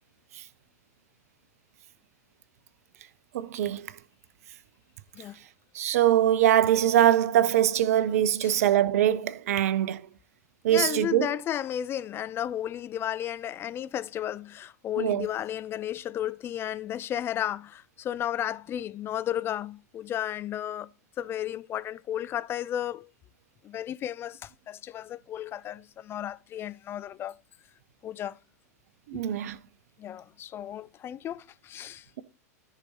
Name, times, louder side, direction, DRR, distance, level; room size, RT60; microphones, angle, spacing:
voice 1, 3.3-3.9 5.7-10.0 10.6-11.3 15.0-15.3 29.1-29.6, right 11 dB, 60° right, 0.8 m, -23 dB
voice 2, 10.7-20.9 21.2-23.1 23.6-27.3 28.0-28.4 29.1-29.2 30.0-32.1, left 11 dB, 25° left, 0.5 m, -33 dB
13.5 x 5.0 x 4.2 m
hypercardioid pair, 100°, 9 cm